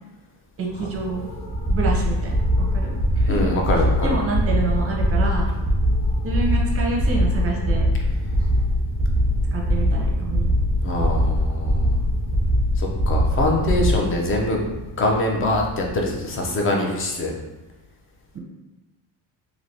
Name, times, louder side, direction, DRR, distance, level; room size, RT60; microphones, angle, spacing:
sound 1, 0.6-16.6, left 1 dB, 80° left, 0.7 m, -36 dB
voice 1, 0.6-1.3 1.7-3.5 4.0-5.5 6.2-7.9 8.4-8.5 9.5-10.5, right 3 dB, 35° right, -1 dB, 0.6 m, -28 dB
sound 2, 1.5-14.0, equal, 5° left, 0.8 m, -21 dB
voice 2, 3.3-4.2 10.8-12.0 12.8-14.6 15.0-17.4, left 1 dB, 30° left, 1 dB, 0.5 m, -23 dB
3.3 x 2.9 x 2.7 m, 1.1 s
cardioid pair, 160°, 42 cm